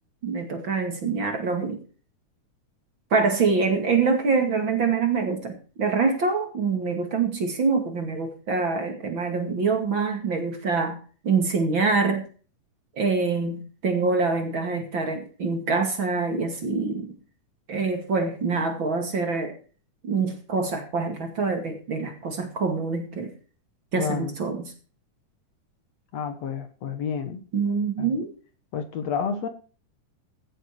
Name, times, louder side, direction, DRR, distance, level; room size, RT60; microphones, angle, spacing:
voice 1, 0.2-1.8 3.1-11.0 11.2-12.2 12.9-17.1 17.7-19.6 20.0-23.3 23.9-24.7 27.5-28.3, right 4 dB, 40° right, 4 dB, 2.8 m, -25 dB
voice 2, 24.0-24.3 26.1-27.4 28.0-28.2 28.7-29.5, left 7 dB, 60° left, 8 dB, 2.3 m, -30 dB
16.0 x 7.9 x 4.7 m, 0.38 s
omnidirectional pair, 3.6 m